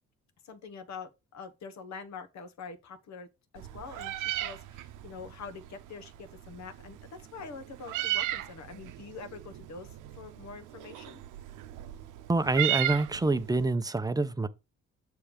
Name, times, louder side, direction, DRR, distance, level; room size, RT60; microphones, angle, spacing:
voice 1, 0.4-3.3 3.5-9.9 10.1-11.2, left 5 dB, 65° left, 1.2 m, -45 dB
Meow, 3.6-13.7, right 13 dB, 85° right, 0.7 m, -36 dB
voice 2, 12.3-14.5, right 2 dB, 10° right, 0.6 m, -26 dB
7.1 x 3.4 x 5.0 m
cardioid pair, 90°, 30 cm